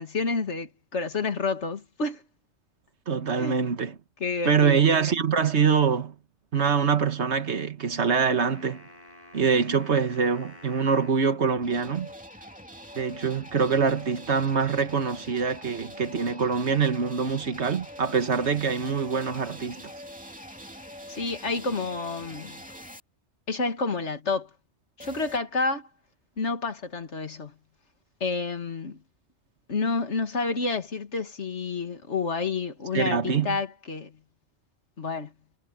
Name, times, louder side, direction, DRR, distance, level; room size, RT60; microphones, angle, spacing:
voice 1, 0.0-2.2 3.4-3.6 4.2-4.8 21.1-22.5 23.5-24.5 25.0-25.9 26.4-27.5 28.2-29.0 29.7-34.1 35.0-35.3, left 4 dB, 85° left, 2.3 m, -29 dB
voice 2, 3.1-3.9 4.4-6.1 6.5-8.8 9.3-12.1 12.9-19.8 32.9-33.6, right 6 dB, 75° right, 1.7 m, -24 dB
sound 1, 8.2-11.3, left 1 dB, 40° left, 7.6 m, -49 dB
sound 2, 11.6-23.0 25.0-25.4, equal, 5° right, 2.6 m, -44 dB
omnidirectional pair, 1.2 m